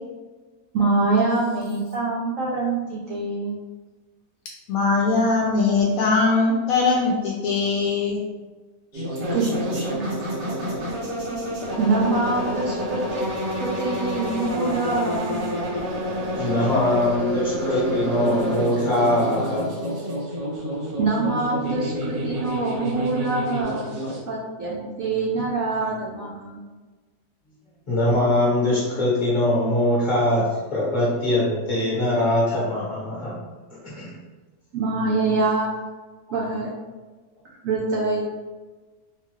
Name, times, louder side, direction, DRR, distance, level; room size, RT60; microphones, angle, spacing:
voice 1, 0.7-3.6 9.3-10.1 11.8-13.2 13.5-15.4 21.0-23.9 24.3-26.6 34.7-35.7 36.3-36.7 37.6-38.4, right 3 dB, 70° right, -4 dB, 0.8 m, -25 dB
voice 2, 4.7-8.2 8.9-9.0, left 3 dB, 70° left, -2 dB, 0.9 m, -21 dB
sound 1, 8.9-24.2, equal, 85° right, 1.7 m, -28 dB
voice 3, 16.4-19.7 27.9-33.4 33.7-34.1, left 1 dB, 35° left, -7 dB, 0.9 m, -22 dB
3.5 x 2.3 x 3.1 m, 1.3 s
omnidirectional pair, 1.8 m